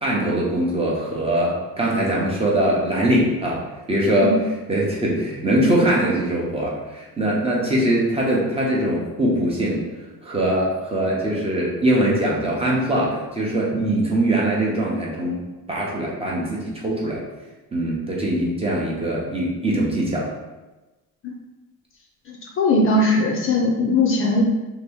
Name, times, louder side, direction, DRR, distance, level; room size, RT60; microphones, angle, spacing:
voice 1, 0.0-3.6 3.9-4.3 4.7-9.8 10.2-17.2 17.7-20.3, right 1 dB, 15° right, -4 dB, 0.6 m, -22 dB
voice 2, 22.3-24.4, left 2 dB, 35° left, -1 dB, 0.5 m, -20 dB
2.8 x 2.6 x 3.4 m, 1.1 s
cardioid pair, 140°, 36 cm